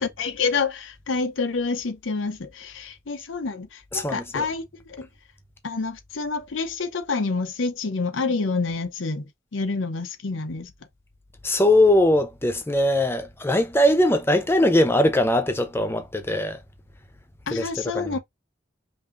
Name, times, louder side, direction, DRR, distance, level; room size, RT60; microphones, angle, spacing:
voice 1, 0.0-4.6 4.9-5.1 5.6-10.7 17.5-18.2, left 4 dB, 85° left, 0.7 m, -28 dB
voice 2, 3.9-4.5 11.4-16.6 17.5-17.7 17.9-18.2, left 1 dB, 10° left, 0.7 m, -21 dB
5.4 x 2.7 x 2.5 m
head